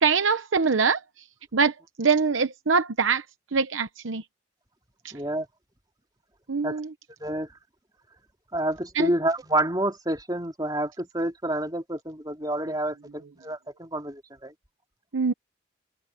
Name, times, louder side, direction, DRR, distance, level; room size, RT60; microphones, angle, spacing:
voice 1, 0.0-1.0 1.5-3.2 3.5-4.2 5.0-5.1 6.5-6.9 8.9-9.1 15.1-15.3, right 5 dB, 90° right, 0.9 m, -23 dB
voice 2, 5.1-5.5 6.6-6.8 7.2-7.5 8.5-14.5, right 1 dB, 20° right, 3.3 m, -28 dB
head